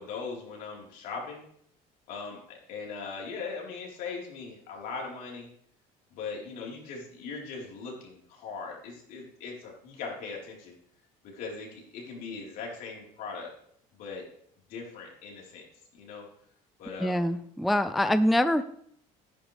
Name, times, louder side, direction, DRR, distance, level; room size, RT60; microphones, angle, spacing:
voice 1, 0.0-1.4 2.1-5.5 6.1-10.7 11.2-13.5 14.0-14.2 14.7-15.7 15.9-16.3 16.8-17.2, left 4 dB, 70° left, -2 dB, 4.2 m, -39 dB
voice 2, 17.0-18.6, left 1 dB, ahead, 12 dB, 0.3 m, -24 dB
13.0 x 11.0 x 3.4 m, 0.66 s
cardioid pair, 155°, 16 cm